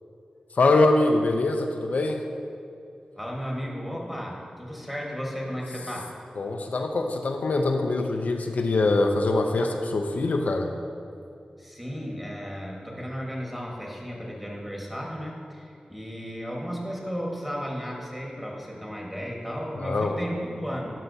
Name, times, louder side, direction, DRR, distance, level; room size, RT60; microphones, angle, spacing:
voice 1, 0.5-2.2 6.4-10.7 19.8-20.2, left 2 dB, 75° left, 3 dB, 0.4 m, -23 dB
voice 2, 3.1-6.1 11.6-20.9, equal, 5° right, -2 dB, 1.4 m, -34 dB
11.0 x 5.6 x 2.7 m, 2.6 s
wide cardioid pair, 65°, 3 cm